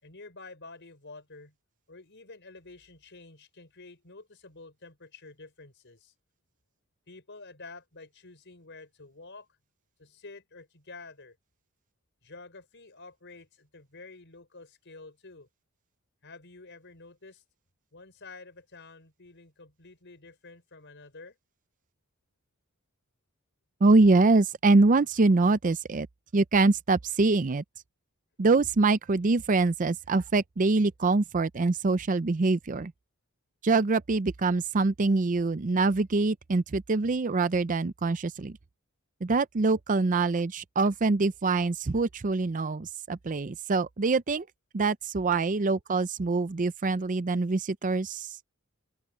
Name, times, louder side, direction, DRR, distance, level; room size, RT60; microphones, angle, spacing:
voice 1, 0.0-1.6 1.9-6.1 7.1-9.5 10.0-11.4 12.2-15.5 16.2-17.4 17.9-21.4, left 3 dB, 55° left, 5.3 m, -49 dB
voice 2, 23.8-26.1 26.3-27.6 28.4-32.9 33.6-38.6 39.2-44.5 44.7-48.4, right 3 dB, 35° right, 0.5 m, -24 dB
open air
head